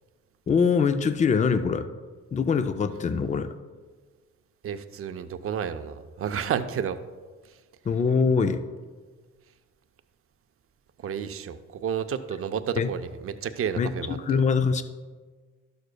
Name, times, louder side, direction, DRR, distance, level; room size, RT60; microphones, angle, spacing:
voice 1, 0.5-1.9 2.3-3.5 7.9-8.6 12.8-12.9 13.8-14.8, left 5 dB, 25° left, 10 dB, 0.4 m, -23 dB
voice 2, 4.6-7.0 11.0-14.2, right 8 dB, 45° right, 9 dB, 0.6 m, -31 dB
12.0 x 6.5 x 2.2 m, 1.4 s
cardioid pair, 90°, 30 cm